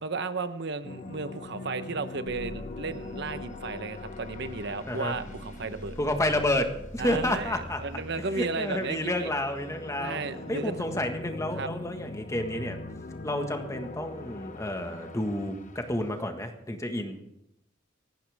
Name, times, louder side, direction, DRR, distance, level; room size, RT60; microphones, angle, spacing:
voice 1, 0.0-6.0 7.0-9.3 10.0-10.7 11.5-11.7, right 4 dB, 60° right, 11 dB, 1.0 m, -34 dB
sound 1, 0.8-6.6 7.0-16.2, left 2 dB, 40° left, 1.0 m, -42 dB
sound 2, 2.3-7.8, left 1 dB, 15° right, 2.7 m, -44 dB
voice 2, 6.0-7.8 8.3-10.2 10.5-12.8 13.2-17.2, left 1 dB, 15° left, 5 dB, 1.6 m, -30 dB
25.0 x 11.5 x 3.6 m, 0.84 s
head